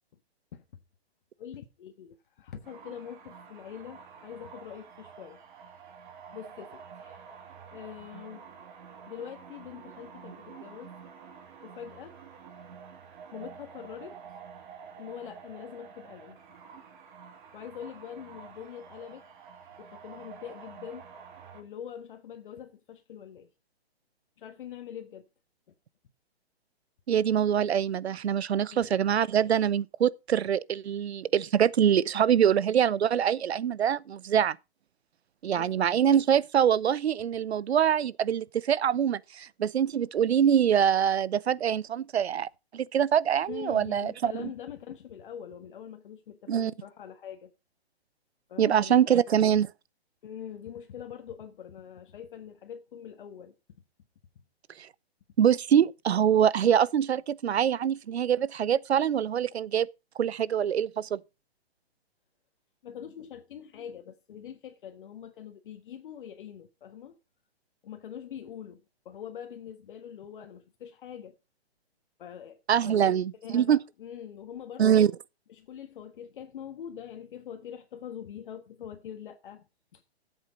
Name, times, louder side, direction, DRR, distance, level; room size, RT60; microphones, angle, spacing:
voice 1, 1.4-5.4 6.3-7.4 7.7-8.4 9.1-10.9 11.6-12.2 13.3-14.2 15.0-16.4 17.5-19.3 19.8-21.1 21.5-23.5 24.4-25.3 28.7-29.1 35.5-35.9 43.5-47.5 48.5-49.6 50.2-53.5 62.8-67.2 67.8-71.4 72.2-73.2 73.4-75.1 75.6-79.7 79.9-80.0, left 9 dB, 55° left, 1.5 m, -44 dB
sound 1, 2.6-21.6, right 6 dB, 50° right, 3.0 m, -49 dB
voice 2, 27.1-34.6 35.4-44.5 46.5-46.7 48.6-49.7 54.8-54.9 55.4-59.9 60.2-61.2 72.7-73.8 74.8-75.1, right 9 dB, 85° right, 0.7 m, -24 dB
13.5 x 8.0 x 4.2 m
hypercardioid pair, 150°, 31 cm